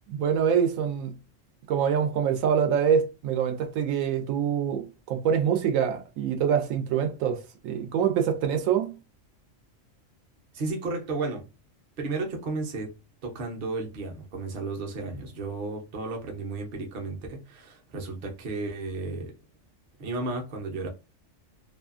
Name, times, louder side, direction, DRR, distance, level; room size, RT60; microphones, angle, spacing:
voice 1, 0.1-1.2 1.7-9.0, right 8 dB, 85° right, 1.0 m, -25 dB
voice 2, 10.5-11.5 12.0-12.9 13.2-19.3 20.0-20.9, right 3 dB, 50° right, 0.8 m, -33 dB
2.6 x 2.4 x 2.4 m
omnidirectional pair, 1.4 m